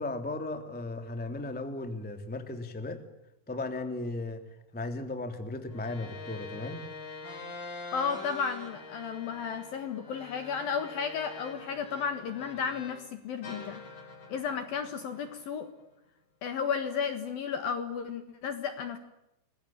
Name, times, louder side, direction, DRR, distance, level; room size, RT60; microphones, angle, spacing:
voice 1, 0.0-3.0 3.5-4.4 4.7-6.8, left 2 dB, 5° left, 7 dB, 1.3 m, -36 dB
sound 1, 5.7-13.1 13.4-15.8, left 4 dB, 35° left, 5.9 m, -45 dB
voice 2, 7.9-13.8 14.3-15.7 16.4-19.0, left 6 dB, 60° left, 9 dB, 2.7 m, -33 dB
28.5 x 22.0 x 8.8 m, 0.86 s
omnidirectional pair, 5.9 m